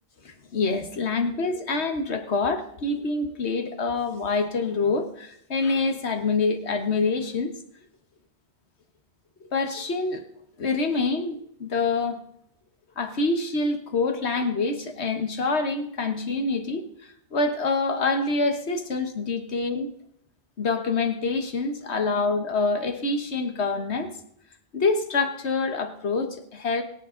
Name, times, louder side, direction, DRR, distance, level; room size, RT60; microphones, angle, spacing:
voice 1, 0.2-7.5 9.5-10.2 10.6-12.2 13.0-16.8 17.3-19.9 20.6-24.1 24.7-26.8, left 3 dB, 90° left, 6 dB, 1.7 m, -26 dB
22.5 x 8.3 x 3.9 m, 0.72 s
omnidirectional pair, 1.1 m